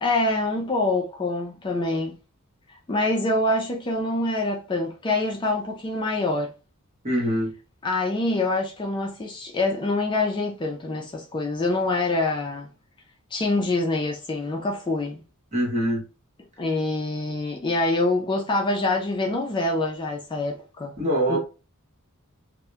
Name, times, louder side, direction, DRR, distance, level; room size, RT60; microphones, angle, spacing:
voice 1, 0.0-2.1 2.9-6.5 7.8-12.7 13.3-15.2 16.6-20.9 21.3-21.4, left 2 dB, 20° left, 0.3 m, -25 dB
voice 2, 7.0-7.5 15.5-16.0 21.0-21.4, right 1 dB, 35° right, 1.0 m, -23 dB
2.7 x 2.1 x 2.3 m
head